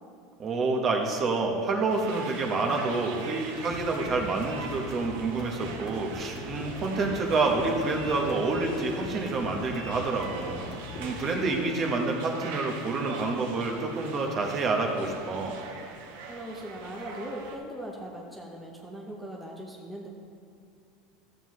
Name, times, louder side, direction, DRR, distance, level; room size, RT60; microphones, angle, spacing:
voice 1, 0.4-10.6 11.0-15.6, right 3 dB, 30° right, 2 dB, 1.1 m, -28 dB
sound 1, 1.9-17.6, right 4 dB, 80° right, 1.0 m, -42 dB
sound 2, 3.7-11.4, left 2 dB, 40° left, 1.5 m, -41 dB
voice 2, 16.3-20.1, right 1 dB, ahead, -2 dB, 0.8 m, -39 dB
13.5 x 7.5 x 3.1 m, 2.5 s
supercardioid pair, 150°, 0 cm